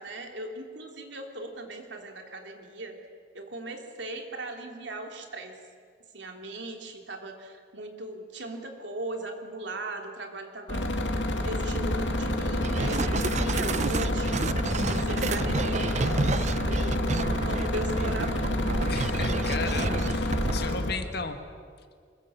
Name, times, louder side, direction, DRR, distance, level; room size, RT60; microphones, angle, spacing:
voice 1, 0.0-3.0 3.3-5.6 6.1-11.0 11.4-14.4 14.8-18.6, right 2 dB, 75° right, 4 dB, 3.1 m, -38 dB
sound 1, 10.7-20.9, left 1 dB, 90° left, 2.6 m, -28 dB
sound 2, 12.6-20.8, right 3 dB, 40° right, 0.6 m, -31 dB
voice 2, 18.9-21.4, left 4 dB, 60° left, 7 dB, 1.9 m, -35 dB
25.5 x 22.5 x 7.1 m, 2.1 s
head